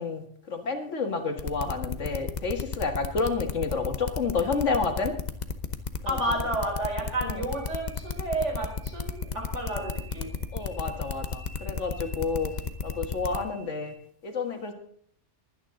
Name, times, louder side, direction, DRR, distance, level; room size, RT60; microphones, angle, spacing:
voice 1, 0.0-5.1 6.0-6.2 7.2-7.4 10.5-12.5 12.8-13.9 14.2-14.7, left 4 dB, 85° left, 5 dB, 2.1 m, -30 dB
sound 1, 1.4-13.4, left 5 dB, 40° left, 1.0 m, -32 dB
voice 2, 6.1-10.4, right 1 dB, 75° right, 1 dB, 4.3 m, -31 dB
sound 2, 7.3-13.9, right 2 dB, 15° left, 2.7 m, -52 dB
22.0 x 9.5 x 3.8 m, 0.62 s
omnidirectional pair, 1.2 m